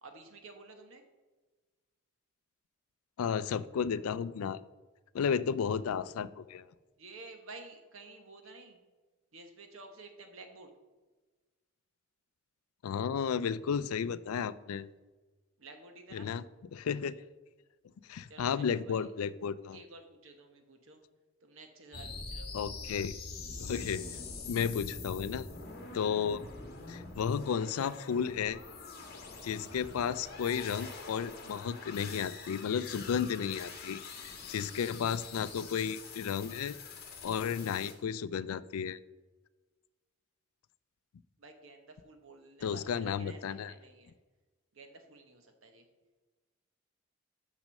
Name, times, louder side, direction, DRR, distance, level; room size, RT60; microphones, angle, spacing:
voice 1, 0.0-1.0 7.0-8.8 9.3-10.7 15.6-16.3 18.3-19.1 19.7-21.0 21.4-22.5 41.4-44.1 44.7-45.8, right 3 dB, 70° right, 5 dB, 1.1 m, -52 dB
voice 2, 3.2-4.6 5.1-6.6 12.8-14.9 16.1-16.4 16.7-17.2 18.1-19.8 22.5-23.2 23.6-24.0 24.4-25.5 25.9-26.4 26.9-28.6 29.4-36.8 37.2-39.0 42.6-43.7, left 7 dB, 85° left, 17 dB, 0.4 m, -33 dB
sound 1, 21.9-37.9, left 4 dB, 45° left, 1.4 m, -45 dB
6.4 x 6.0 x 6.4 m, 1.3 s
head